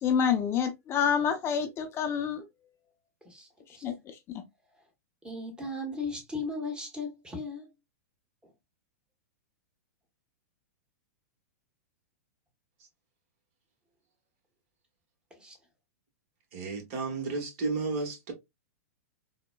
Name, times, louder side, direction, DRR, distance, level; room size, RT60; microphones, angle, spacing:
voice 1, 0.0-2.4 3.8-3.9 4.3-4.4, left 7 dB, 30° left, 0.5 m, -27 dB
voice 2, 3.2-4.0 5.2-7.7 15.3-15.6, left 3 dB, 10° right, 1.0 m, -37 dB
voice 3, 16.5-18.3, right 4 dB, 55° right, 1.2 m, -32 dB
3.8 x 2.1 x 2.2 m
hypercardioid pair, 120°, 9 cm